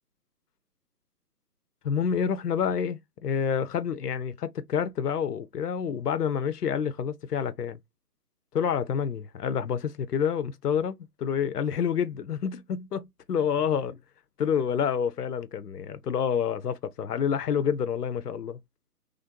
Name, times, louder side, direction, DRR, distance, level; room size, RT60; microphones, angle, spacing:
voice 1, 1.8-7.8 8.5-14.0 14.4-18.6, left 7 dB, 75° left, 0.6 m, -28 dB
3.3 x 2.5 x 2.6 m
figure-of-eight pair, 145°, 48 cm